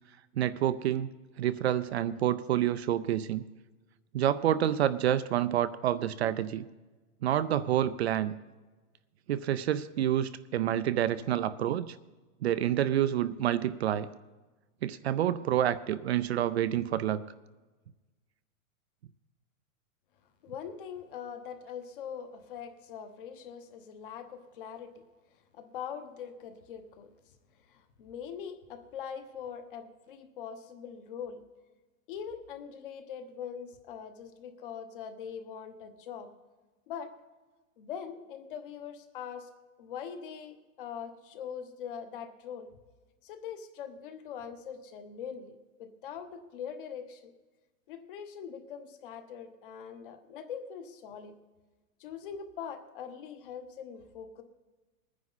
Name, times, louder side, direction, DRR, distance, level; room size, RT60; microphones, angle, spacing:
voice 1, 0.4-1.1 1.4-3.4 4.1-6.6 7.2-8.3 9.3-11.9 12.4-14.1 14.8-17.2, right 11 dB, 50° right, 13 dB, 0.5 m, -28 dB
voice 2, 20.4-25.0 25.5-27.1 27.7-31.4 32.1-36.3 36.9-37.1 37.8-39.5 39.8-42.7 43.2-47.3 47.9-51.4 52.0-54.4, left 7 dB, 40° left, 9 dB, 1.1 m, -42 dB
20.5 x 9.7 x 4.1 m, 1.2 s
supercardioid pair, 175°, 41 cm